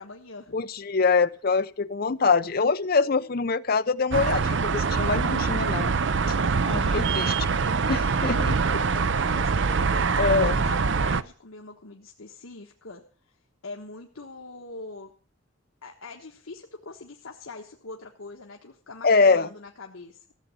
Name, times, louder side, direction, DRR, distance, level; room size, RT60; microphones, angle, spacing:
voice 1, 0.0-0.6 1.8-2.1 2.9-3.4 6.8-7.3 8.1-13.0 13.6-15.1 15.8-20.2, left 3 dB, 80° left, 1.4 m, -43 dB
voice 2, 0.5-5.9 6.7-7.3 7.9-8.8 10.2-10.6 19.0-19.5, left 4 dB, 45° left, 0.6 m, -24 dB
sound 1, 4.1-11.2, right 5 dB, 60° right, 0.5 m, -24 dB
15.5 x 7.4 x 8.2 m
head